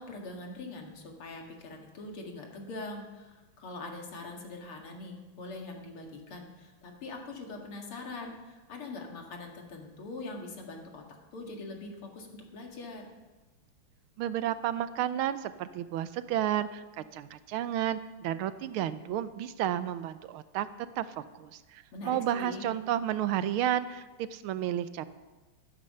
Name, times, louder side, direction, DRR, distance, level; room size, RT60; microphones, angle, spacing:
voice 1, 0.0-11.0 11.3-13.1 21.9-22.7, left 2 dB, 80° left, 1 dB, 2.9 m, -43 dB
voice 2, 14.2-20.7 21.0-25.1, right 11 dB, 80° right, 13 dB, 1.5 m, -32 dB
12.5 x 12.5 x 5.4 m, 1.2 s
omnidirectional pair, 2.4 m